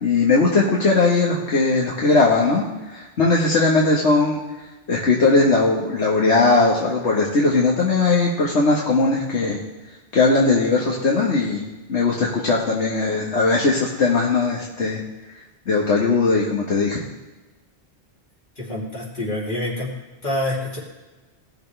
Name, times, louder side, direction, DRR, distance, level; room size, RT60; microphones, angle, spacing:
voice 1, 0.0-4.4 4.9-9.6 10.1-15.0 15.7-17.0, left 3 dB, 80° left, -4 dB, 1.7 m, -19 dB
voice 2, 18.6-19.9 20.2-20.8, left 1 dB, 45° left, -5 dB, 3.1 m, -26 dB
17.5 x 6.7 x 3.3 m, 1.2 s
omnidirectional pair, 1.1 m